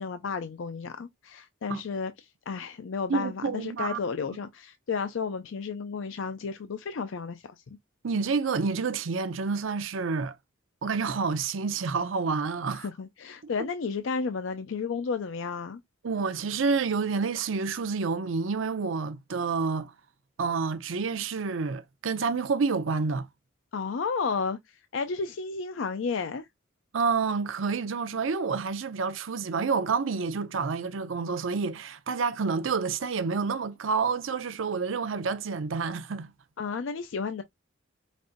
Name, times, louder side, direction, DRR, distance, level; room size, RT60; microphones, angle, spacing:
voice 1, 0.0-2.1 2.5-7.4 12.7-15.8 23.7-26.4 36.6-37.4, left 5 dB, 65° left, 0.4 m, -32 dB
voice 2, 3.1-4.0 8.0-10.3 10.8-12.9 16.0-19.9 20.4-23.3 26.9-36.3, right 5 dB, 70° right, 0.5 m, -29 dB
5.2 x 2.6 x 2.5 m
head